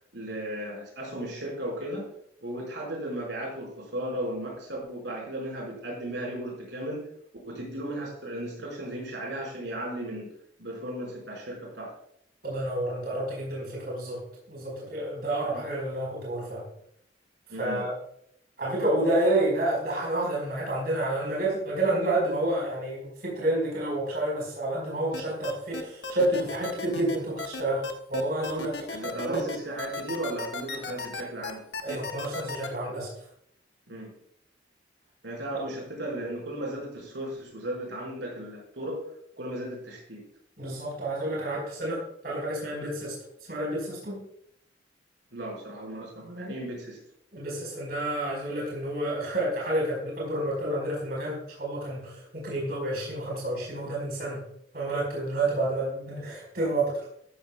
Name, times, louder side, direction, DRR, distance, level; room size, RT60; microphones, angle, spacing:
voice 1, 0.1-2.1 2.4-7.0 7.5-10.3 10.6-11.9 15.5-15.7 17.5-17.8 28.9-31.6 33.9-34.1 35.2-39.0 39.4-40.2 45.3-47.0, right 1 dB, 75° right, -2 dB, 5.2 m, -35 dB
voice 2, 12.4-14.2 14.5-16.6 17.6-17.9 18.6-27.8 28.1-29.4 31.8-33.1 40.6-43.1 43.5-44.2 47.3-54.4 54.7-57.0, right 1 dB, 55° right, -4 dB, 4.8 m, -29 dB
sound 1, 25.1-32.7, left 3 dB, 65° left, 1.2 m, -35 dB
13.5 x 13.5 x 2.3 m, 0.70 s
head